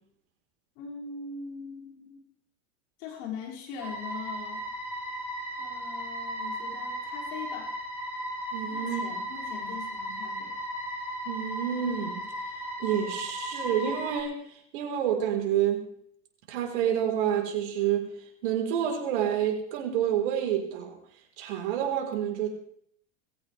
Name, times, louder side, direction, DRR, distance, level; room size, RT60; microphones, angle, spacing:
voice 1, 0.8-2.2 3.0-4.6 5.6-7.8 8.7-10.5, left 6 dB, 65° left, -2 dB, 5.7 m, -41 dB
sound 1, 3.8-14.2, equal, 5° right, 6.9 m, -36 dB
voice 2, 8.5-9.0 11.3-12.2 12.8-14.4 14.7-15.8 16.5-18.1 18.4-21.0 21.4-22.5, right 9 dB, 75° right, 2 dB, 4.0 m, -28 dB
19.5 x 16.0 x 3.4 m, 0.66 s
hypercardioid pair, 90°, 35 cm